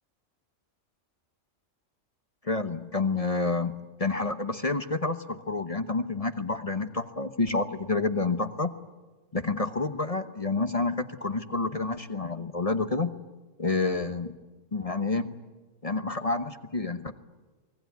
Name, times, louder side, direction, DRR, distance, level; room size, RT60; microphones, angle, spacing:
voice 1, 2.4-8.7 9.3-13.1 13.6-14.3 14.7-15.4 15.8-17.1, left 3 dB, 30° left, 9 dB, 1.0 m, -29 dB
28.5 x 20.0 x 9.4 m, 1.3 s
omnidirectional pair, 1.3 m